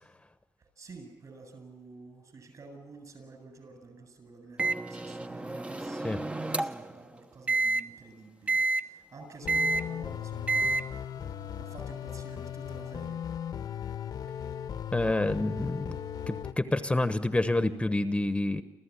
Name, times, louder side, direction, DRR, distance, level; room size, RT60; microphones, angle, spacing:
voice 1, 0.6-11.1 11.6-13.2, right 3 dB, 55° right, 7 dB, 7.8 m, -50 dB
Microwave oven, 4.6-6.9 7.5-7.8 8.5-8.8 9.5-9.8 10.5-10.8, right 3 dB, 15° right, 0.9 m, -29 dB
sound 1, 9.4-16.5, left 9 dB, 75° left, 1.2 m, -37 dB
voice 2, 14.9-16.0 16.3-18.6, left 2 dB, 15° left, 11 dB, 1.0 m, -28 dB
28.0 x 14.0 x 9.9 m, 1.1 s
cardioid pair, 90°, 7 cm